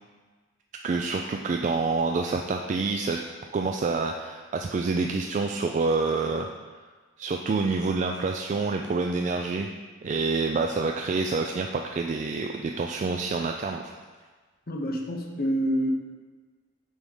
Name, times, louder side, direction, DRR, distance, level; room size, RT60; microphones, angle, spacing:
voice 1, 0.8-3.2 3.5-6.5 7.2-9.7 10.0-13.8, right 4 dB, 40° right, 3 dB, 0.3 m, -27 dB
voice 2, 14.7-15.9, equal, 50° left, 1 dB, 0.8 m, -27 dB
8.2 x 3.6 x 5.4 m, 1.4 s
head